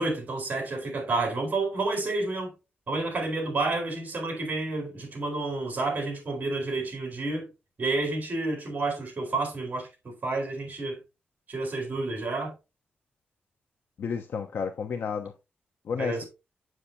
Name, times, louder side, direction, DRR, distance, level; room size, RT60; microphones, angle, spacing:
voice 1, 0.0-2.5 2.9-7.5 7.8-11.0 11.5-12.5 16.0-16.3, right 2 dB, 50° right, 4.0 m, -30 dB
voice 2, 14.0-15.3 15.9-16.2, left 6 dB, 80° left, 0.8 m, -31 dB
7.8 x 7.4 x 2.7 m
wide cardioid pair, 100°, 4 cm